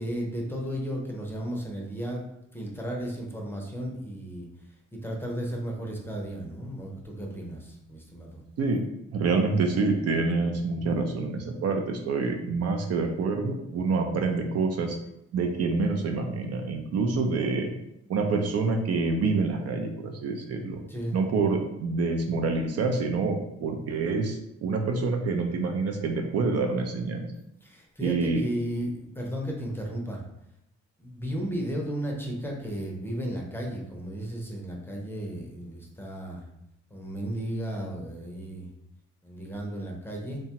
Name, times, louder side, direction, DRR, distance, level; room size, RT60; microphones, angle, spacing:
voice 1, 0.0-2.3 2.5-4.5 4.9-8.4 20.9-21.2 27.6-30.2 31.0-36.4 36.9-38.7 39.2-40.4, equal, 5° left, -1 dB, 0.6 m, -34 dB
voice 2, 8.6-15.0 15.3-17.7 18.1-20.8 21.1-27.3 28.0-28.4, right 4 dB, 55° right, 4 dB, 0.4 m, -27 dB
2.8 x 2.2 x 2.8 m, 0.83 s
cardioid pair, 90°, 30 cm